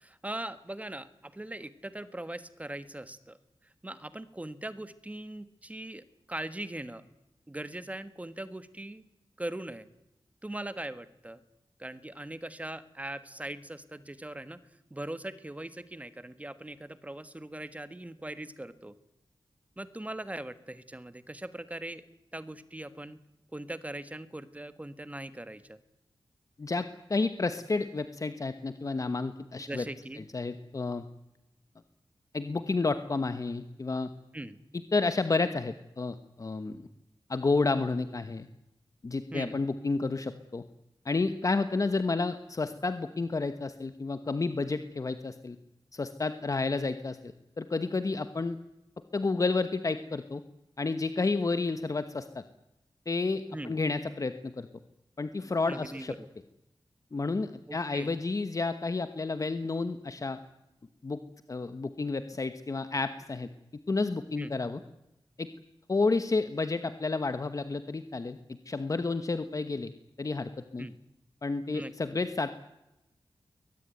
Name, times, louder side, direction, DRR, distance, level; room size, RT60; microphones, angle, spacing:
voice 1, 0.0-3.4 3.6-7.0 7.5-9.0 9.4-9.9 10.4-11.4 11.8-14.6 14.9-18.9 19.8-22.1 22.3-23.2 23.5-25.8 29.7-30.3 34.3-34.6 39.3-39.6 53.5-53.7 55.7-56.3 57.7-58.1 64.4-64.5 70.8-71.0 71.7-71.9, right 1 dB, 15° right, 13 dB, 1.4 m, -40 dB
voice 2, 26.6-29.8 30.3-31.0 32.3-34.1 34.9-36.8 37.3-38.5 39.0-40.6 41.0-45.6 45.9-48.6 49.1-50.4 50.8-52.4 53.1-54.7 55.2-56.1 57.1-60.4 61.0-61.2 61.5-63.5 63.9-64.8 65.4-65.5 65.9-68.4 68.7-69.9 70.2-70.9 71.4-72.5, left 3 dB, 40° left, 11 dB, 1.2 m, -30 dB
22.5 x 19.5 x 9.2 m, 0.93 s
wide cardioid pair, 125°, 9 cm